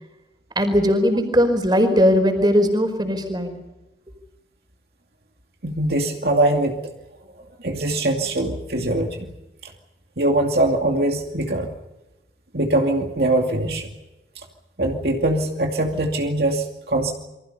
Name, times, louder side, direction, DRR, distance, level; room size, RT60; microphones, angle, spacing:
voice 1, 0.5-3.6, equal, 25° right, 7 dB, 4.8 m, -19 dB
voice 2, 5.6-6.8 7.6-9.3 9.6-9.7 10.2-11.7 12.5-13.9 14.8-17.1, right 1 dB, 60° right, 2 dB, 2.5 m, -22 dB
29.0 x 24.5 x 5.6 m, 1.0 s
head